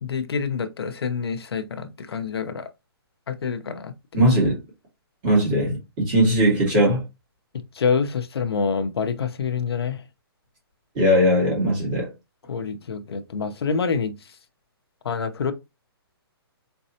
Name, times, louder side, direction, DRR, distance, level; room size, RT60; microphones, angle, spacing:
voice 1, 0.0-2.7 3.3-3.9 7.8-10.0 12.5-14.1 15.0-15.5, left 5 dB, 75° left, 0.8 m, -26 dB
voice 2, 4.1-4.6 5.2-7.0 10.9-12.1, equal, 20° right, 2.3 m, -19 dB
4.4 x 4.1 x 2.8 m
hypercardioid pair, 175°, 13 cm